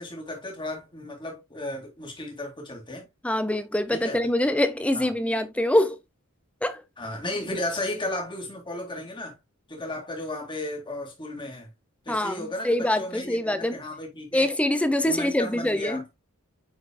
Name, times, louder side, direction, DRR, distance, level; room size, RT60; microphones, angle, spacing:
voice 1, 0.0-3.1 3.9-4.2 4.9-5.1 7.0-9.3 9.7-11.7 12.1-14.5 15.0-16.0, left 1 dB, 20° left, 2.2 m, -34 dB
voice 2, 3.2-6.0 6.6-6.8 12.1-13.8 14.3-16.0, left 1 dB, 5° left, 0.6 m, -24 dB
9.4 x 4.6 x 2.2 m
head